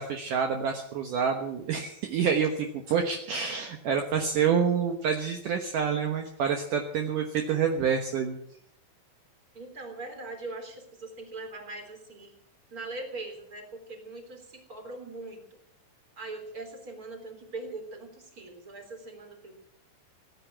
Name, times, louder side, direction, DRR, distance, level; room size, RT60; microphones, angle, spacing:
voice 1, 0.0-8.4, right 6 dB, 70° right, 3 dB, 2.0 m, -27 dB
voice 2, 9.5-12.3 12.7-15.4 16.2-19.6, right 2 dB, 20° right, 4 dB, 3.3 m, -41 dB
17.5 x 11.0 x 7.3 m, 0.70 s
omnidirectional pair, 5.4 m